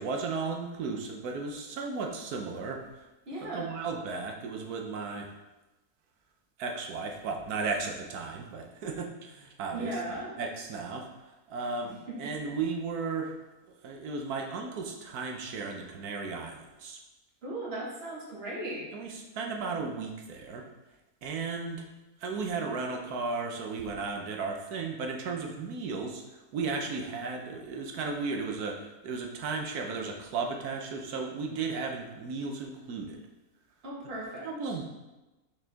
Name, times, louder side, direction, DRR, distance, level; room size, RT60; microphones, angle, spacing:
voice 1, 0.0-3.1 3.4-5.3 6.6-9.9 10.4-11.1 11.5-13.4 13.8-17.0 18.9-20.7 21.2-21.9 22.2-33.2 34.4-34.8, right 4 dB, 80° right, 2 dB, 1.3 m, -35 dB
voice 2, 3.3-3.7 9.7-10.3 11.8-12.3 17.4-18.9 33.8-34.7, right 1 dB, 40° right, -4 dB, 1.7 m, -37 dB
6.1 x 4.8 x 3.4 m, 1.1 s
omnidirectional pair, 1.6 m